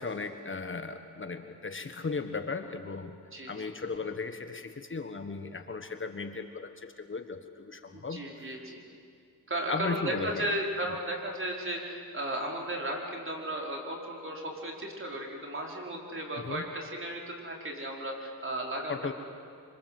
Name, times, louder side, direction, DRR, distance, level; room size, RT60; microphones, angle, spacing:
voice 1, 0.0-3.2 3.5-8.3 9.7-10.5 16.5-16.6 18.9-19.1, left 4 dB, 35° left, 7 dB, 1.4 m, -36 dB
voice 2, 3.3-3.7 7.9-8.8 9.5-19.1, right 1 dB, 35° right, 0 dB, 4.8 m, -35 dB
26.0 x 25.5 x 7.8 m, 2.3 s
cardioid pair, 90°, 35 cm